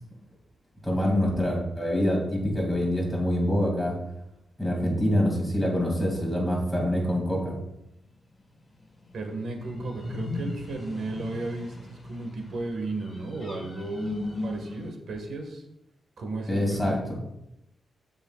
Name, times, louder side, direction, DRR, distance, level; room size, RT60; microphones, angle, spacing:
voice 1, 0.8-3.9 4.6-7.5 16.5-17.0, equal, 5° left, -2 dB, 2.3 m, -25 dB
sound 1, 9.0-14.9, left 2 dB, 25° left, 1.5 m, -37 dB
voice 2, 9.1-15.6 16.2-17.0, right 2 dB, 65° right, 3 dB, 1.5 m, -34 dB
14.0 x 5.6 x 2.4 m, 0.87 s
wide cardioid pair, 165°, 0 cm